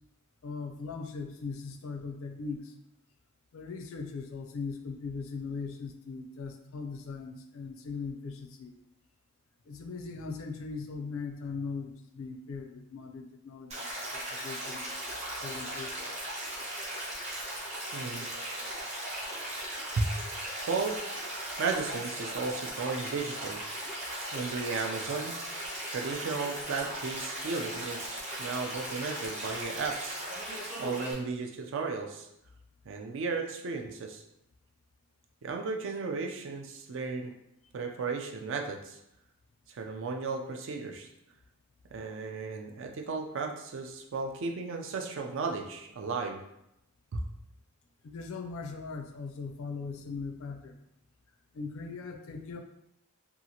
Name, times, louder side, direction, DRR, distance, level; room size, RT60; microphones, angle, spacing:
voice 1, 0.4-2.7 3.5-8.7 9.7-15.0 15.4-16.1 48.0-50.8 51.5-52.6, left 4 dB, 70° left, 5 dB, 0.4 m, -39 dB
Stream, 13.7-31.1, right 1 dB, 30° right, 0.8 m, -38 dB
voice 2, 17.9-18.2 20.0-20.1 20.7-21.2 21.6-23.6 24.3-25.4 25.9-30.2 30.8-32.3 32.9-34.2 35.4-37.3 37.7-39.0 39.7-41.1 41.9-46.4 47.1-47.2, right 4 dB, 60° right, 3 dB, 0.4 m, -34 dB
2.8 x 2.4 x 2.7 m, 0.81 s
head